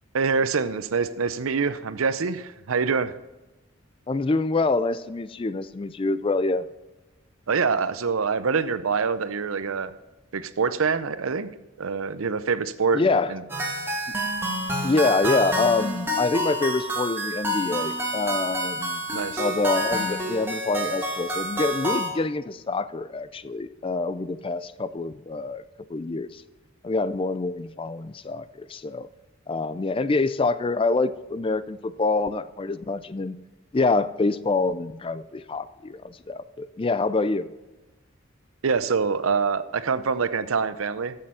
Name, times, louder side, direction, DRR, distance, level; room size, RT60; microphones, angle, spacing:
voice 1, 0.1-3.1 7.5-9.9 10.3-11.5 11.8-13.0 13.3-13.4 19.1-19.4 38.6-41.1, right 5 dB, 85° right, 14 dB, 0.6 m, -25 dB
voice 2, 4.1-6.7 12.9-13.3 14.8-19.0 19.4-25.6 25.9-26.4 26.8-29.1 29.5-33.4 33.7-37.5, left 3 dB, 25° left, 14 dB, 0.4 m, -26 dB
sound 1, 13.5-22.1, right 1 dB, 10° right, 1.9 m, -28 dB
13.5 x 6.6 x 5.6 m, 1.1 s
head